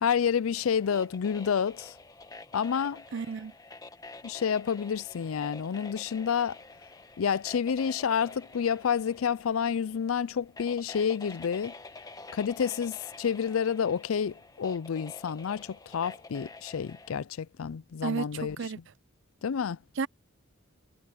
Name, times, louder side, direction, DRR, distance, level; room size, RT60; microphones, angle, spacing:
voice 1, 0.0-1.9 2.5-3.0 4.2-6.6 7.2-11.7 12.3-18.6 19.4-19.8, left 7 dB, 90° left, 0.4 m, -29 dB
sound 1, 0.5-17.2, left 3 dB, 20° left, 1.2 m, -48 dB
voice 2, 3.1-3.5 18.0-18.8 20.0-20.1, right 5 dB, 60° right, 0.5 m, -32 dB
head